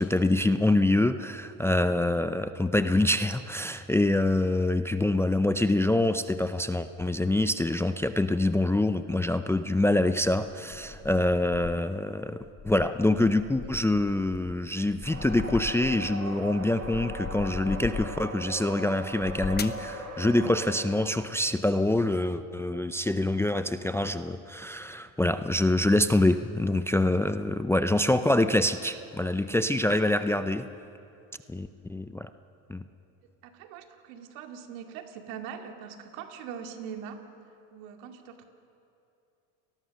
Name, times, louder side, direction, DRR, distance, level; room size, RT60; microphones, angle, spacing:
voice 1, 0.0-12.4 12.6-30.6 31.5-32.3 32.7-32.8, left 1 dB, 5° left, 10 dB, 0.5 m, -25 dB
sound 1, 10.1-12.0 12.4-16.2 16.6-18.4 19.1-19.9, left 6 dB, 25° left, 1.0 m, -39 dB
sound 2, 15.0-20.7, right 1 dB, 40° right, 7.0 m, -39 dB
voice 2, 33.4-37.2 37.7-38.4, right 7 dB, 75° right, 5 dB, 2.4 m, -42 dB
29.5 x 19.5 x 6.5 m, 2.7 s
supercardioid pair, 110°, 42 cm